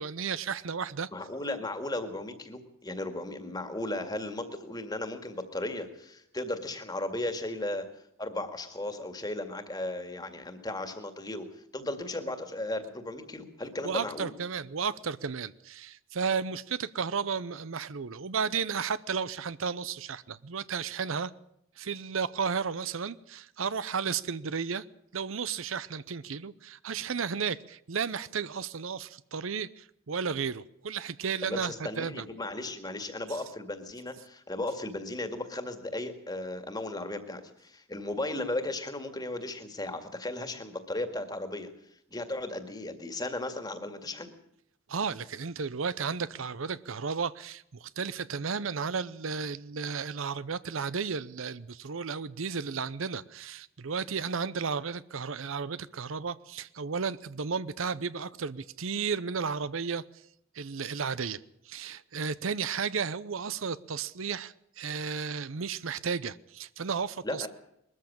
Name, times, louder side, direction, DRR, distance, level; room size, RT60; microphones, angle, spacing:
voice 1, 0.0-1.1 13.8-21.3 21.8-24.8 25.1-32.2 44.9-60.0 60.5-61.4 61.7-67.5, right 5 dB, 75° right, 0.7 m, -33 dB
voice 2, 1.1-7.9 8.2-14.3 31.4-41.7 42.1-44.3 67.2-67.5, left 1 dB, 20° left, 2.0 m, -36 dB
21.5 x 14.0 x 8.7 m
head